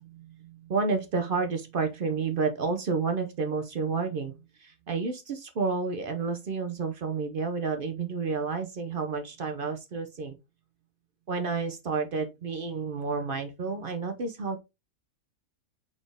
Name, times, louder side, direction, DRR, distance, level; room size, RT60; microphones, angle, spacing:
voice 1, 0.0-10.4 11.3-14.6, right 4 dB, 60° right, 0.6 m, -30 dB
4.2 x 3.6 x 3.3 m
omnidirectional pair, 1.5 m